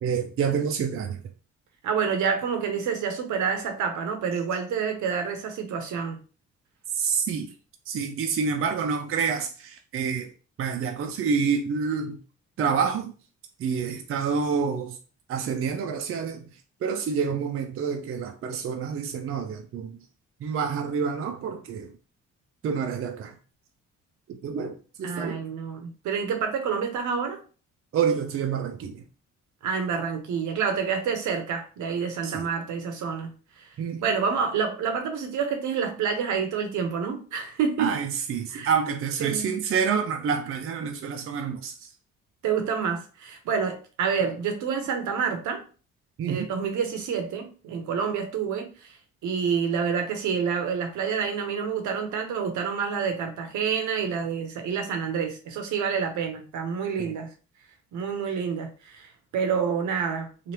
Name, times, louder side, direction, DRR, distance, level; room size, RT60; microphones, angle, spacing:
voice 1, 0.0-1.2 6.9-7.5 7.9-10.3 10.6-12.2 12.6-13.1 13.6-15.0 15.3-16.5 16.8-20.0 20.4-21.9 22.6-23.4 24.3-25.4 27.9-29.0 32.2-32.5 33.8-34.1 37.8-41.9 46.2-46.5 57.0-57.1, right 6 dB, 45° right, 0.5 m, -28 dB
voice 2, 1.8-6.2 25.0-27.4 29.6-33.7 34.0-38.0 38.5-38.7 39.2-39.6 42.4-45.6 46.3-49.0 49.2-57.3 57.9-60.5, right 6 dB, 75° right, 0.8 m, -28 dB
3.2 x 2.4 x 2.8 m
cardioid pair, 90°, 30 cm